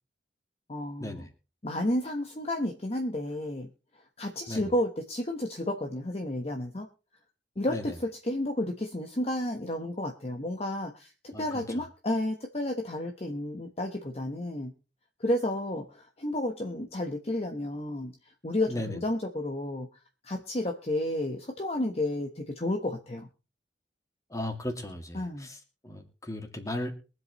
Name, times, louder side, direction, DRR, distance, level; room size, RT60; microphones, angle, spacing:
voice 1, 0.7-1.3 1.6-3.7 4.2-6.9 7.6-14.7 15.2-18.1 18.4-19.9 20.2-23.3 25.1-25.5, left 1 dB, 35° left, 4 dB, 1.2 m, -31 dB
voice 2, 11.3-11.6 18.7-19.0 24.3-26.9, left 1 dB, 20° left, 4 dB, 2.2 m, -36 dB
23.0 x 8.0 x 3.1 m, 0.34 s
head